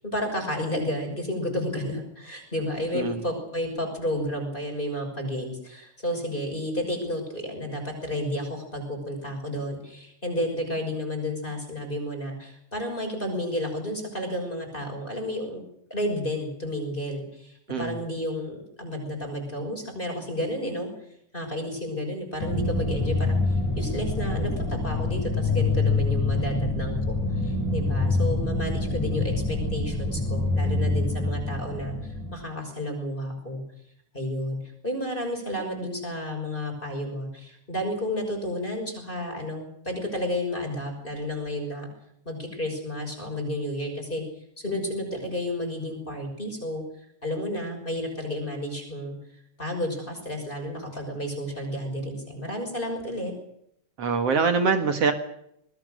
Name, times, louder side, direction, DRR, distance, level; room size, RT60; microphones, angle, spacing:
voice 1, 0.0-15.6 15.9-20.9 21.3-33.6 34.1-34.6 34.8-41.9 42.2-44.2 44.6-46.8 47.2-49.2 49.6-53.3, left 1 dB, 15° left, 2 dB, 6.4 m, -31 dB
sound 1, 22.4-32.4, left 3 dB, 80° left, 9.2 m, -26 dB
voice 2, 54.0-55.1, right 5 dB, 60° right, 7 dB, 2.6 m, -23 dB
25.0 x 20.5 x 6.6 m, 0.74 s
omnidirectional pair, 3.3 m